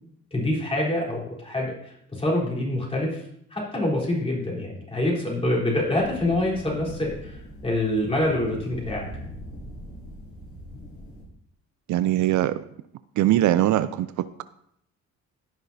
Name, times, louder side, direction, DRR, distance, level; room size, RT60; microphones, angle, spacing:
voice 1, 0.3-3.2 3.5-7.4 7.6-9.0, left 1 dB, 20° left, -4 dB, 3.8 m, -26 dB
sound 1, 5.7-11.2, left 1 dB, 50° left, 3.8 m, -41 dB
voice 2, 11.9-12.6 13.2-14.4, right 13 dB, 75° right, 14 dB, 0.5 m, -22 dB
15.5 x 5.9 x 2.7 m, 0.73 s
cardioid pair, 90°, 30 cm